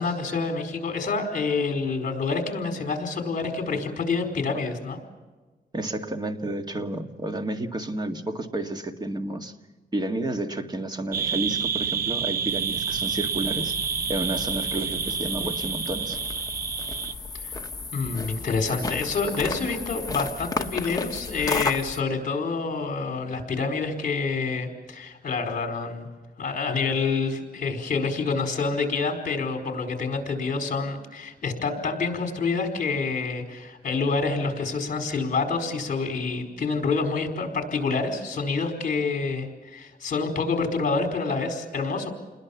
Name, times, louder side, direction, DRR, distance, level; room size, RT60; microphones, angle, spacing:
voice 1, 0.0-5.0 17.4-17.5 17.9-26.1 26.4-42.1, left 4 dB, 50° left, 4 dB, 4.6 m, -27 dB
voice 2, 5.7-9.5 9.9-13.7 14.1-16.2, right 1 dB, 25° right, 6 dB, 1.9 m, -31 dB
sound 1, 11.1-17.1, right 7 dB, 65° right, 0.9 m, -29 dB
sound 2, 12.5-22.0, left 3 dB, 20° left, 1.3 m, -33 dB
29.0 x 21.0 x 7.2 m, 1.3 s
wide cardioid pair, 135°, 17 cm